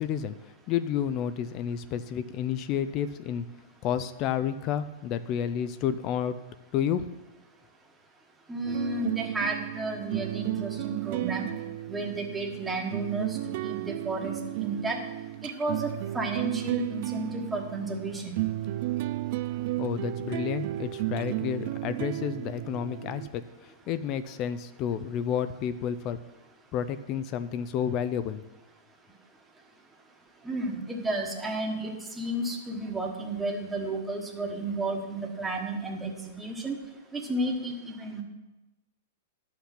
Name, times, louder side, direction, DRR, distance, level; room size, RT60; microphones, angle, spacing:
voice 1, 0.0-3.4 3.8-6.4 6.7-7.1 19.8-26.2 26.7-28.4, left 9 dB, 35° left, 12 dB, 0.4 m, -30 dB
voice 2, 8.5-11.5 11.9-15.0 15.4-18.4 30.4-36.8 37.1-38.2, right 2 dB, 10° right, 1 dB, 1.3 m, -32 dB
sound 1, 8.6-23.3, right 16 dB, 45° right, 0.3 m, -34 dB
11.5 x 5.8 x 5.8 m, 1.1 s
hypercardioid pair, 155°, 0 cm